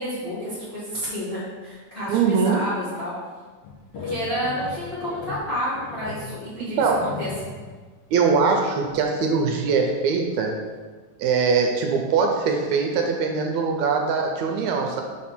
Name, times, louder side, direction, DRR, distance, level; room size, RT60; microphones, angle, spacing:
voice 1, 0.0-3.1 4.0-7.5, equal, 25° left, -11 dB, 1.3 m, -30 dB
voice 2, 2.1-2.6 6.8-7.1 8.1-10.5 11.2-15.0, right 5 dB, 80° right, 2 dB, 1.9 m, -22 dB
sound 1, 3.6-7.8 8.1-8.3 8.8-9.5 9.8-9.9 10.3-10.4, left 4 dB, 70° left, 1.8 m, -37 dB
5.8 x 4.2 x 6.0 m, 1.4 s
omnidirectional pair, 3.5 m